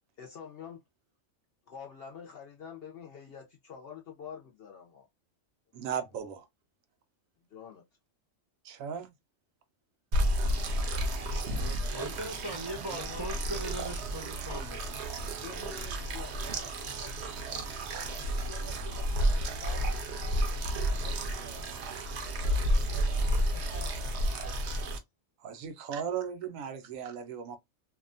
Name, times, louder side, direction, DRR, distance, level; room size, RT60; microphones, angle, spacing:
voice 1, 0.2-0.8 1.7-5.1 7.5-7.8 15.4-16.7, left 7 dB, 60° left, 0.6 m, -46 dB
voice 2, 5.7-6.4 8.6-9.1 25.4-27.6, right 8 dB, 85° right, 1.0 m, -36 dB
sound 1, 10.1-25.0, right 1 dB, 65° right, 0.8 m, -31 dB
voice 3, 10.7-12.2 12.8-13.6 15.5-15.6 16.0-16.7 17.0-17.1 18.1-21.7 22.4-24.7, left 3 dB, 40° left, 1.0 m, -51 dB
voice 4, 11.9-15.0, right 1 dB, 25° right, 0.5 m, -39 dB
2.7 x 2.1 x 2.5 m
omnidirectional pair, 1.4 m